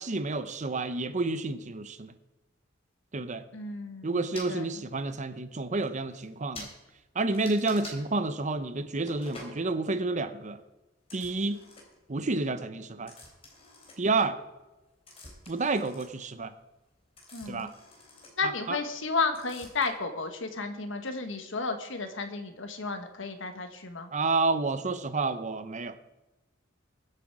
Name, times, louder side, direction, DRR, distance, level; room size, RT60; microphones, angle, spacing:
voice 1, 0.0-2.1 3.1-3.4 4.0-6.7 7.1-10.6 11.1-11.6 12.1-13.1 14.0-14.4 15.5-16.5 17.5-17.7 18.4-18.8 24.1-26.0, right 3 dB, 40° right, 11 dB, 0.8 m, -30 dB
voice 2, 3.5-4.2 4.5-4.7 17.3-17.7 18.4-24.1, left 4 dB, 70° left, 6 dB, 1.6 m, -33 dB
sound 1, 4.3-4.5 5.4-5.5 5.8-5.9 6.1-6.3 6.5-6.7 7.3-8.0 9.1-9.6 11.0-12.1 13.1-14.4 14.8-19.1 19.3-19.9, left 2 dB, 30° left, 3.6 m, -48 dB
22.5 x 7.9 x 4.9 m, 1.0 s
head